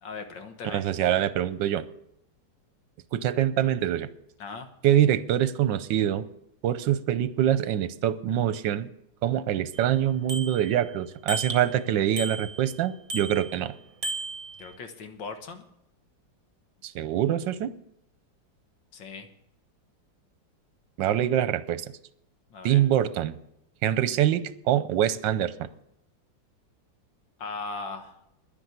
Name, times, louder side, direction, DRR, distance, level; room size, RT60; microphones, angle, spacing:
voice 1, 0.0-0.8 4.4-4.7 14.6-15.6 18.9-19.3 22.5-22.8 27.4-28.2, left 4 dB, 80° left, 7 dB, 2.1 m, -38 dB
voice 2, 0.6-1.8 3.1-4.1 4.8-6.2 6.6-8.9 9.2-13.7 16.8-17.7 21.0-21.9 22.6-23.3 23.8-25.7, right 11 dB, 80° right, 15 dB, 1.4 m, -24 dB
Bicycle bell, 9.7-9.8 10.3-10.9 11.3-11.8 12.2-12.8 13.1-13.6 14.0-14.8, right 2 dB, 50° right, 1.6 m, -35 dB
10.5 x 10.0 x 8.0 m, 0.78 s
omnidirectional pair, 2.0 m